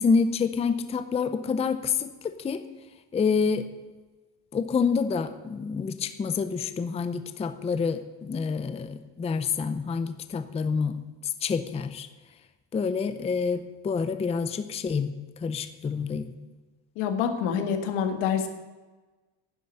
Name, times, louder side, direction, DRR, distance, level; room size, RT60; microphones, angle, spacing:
voice 1, 0.0-2.6 3.1-3.7 4.5-11.0 11.4-12.1 12.7-15.1 15.4-16.3, left 5 dB, 15° left, 11 dB, 0.5 m, -27 dB
voice 2, 17.0-18.5, left 7 dB, 90° left, 7 dB, 1.9 m, -26 dB
11.0 x 7.7 x 9.7 m, 1.2 s
cardioid pair, 160°, 49 cm